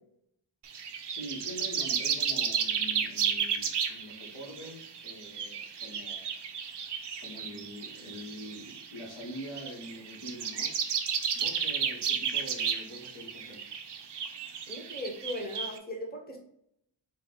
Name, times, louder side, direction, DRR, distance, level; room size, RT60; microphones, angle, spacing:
sound 1, 0.6-15.8, right 7 dB, 65° right, 0.6 m, -33 dB
voice 1, 1.1-6.3 7.2-10.7 11.3-13.6, equal, 85° left, -1 dB, 1.2 m, -44 dB
voice 2, 14.7-16.4, left 1 dB, 20° left, 1 dB, 0.8 m, -38 dB
4.3 x 2.2 x 3.7 m, 0.76 s
wide cardioid pair, 90°, 45 cm